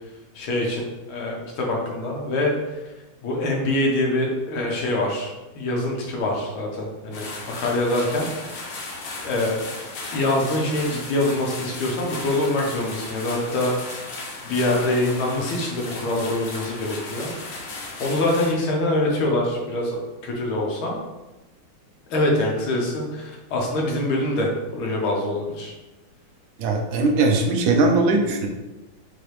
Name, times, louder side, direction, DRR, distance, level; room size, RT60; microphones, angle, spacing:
voice 1, 0.4-2.8 3.2-7.3 7.6-8.3 9.2-9.6 10.1-13.7 14.4-17.3 18.0-20.9 22.1-25.7, left 1 dB, 85° left, -1 dB, 1.9 m, -24 dB
sound 1, 7.1-18.5, left 3 dB, 70° left, 1.6 m, -35 dB
voice 2, 26.6-28.5, right 3 dB, 80° right, 2 dB, 1.4 m, -20 dB
5.9 x 2.8 x 3.2 m, 1.1 s
omnidirectional pair, 2.2 m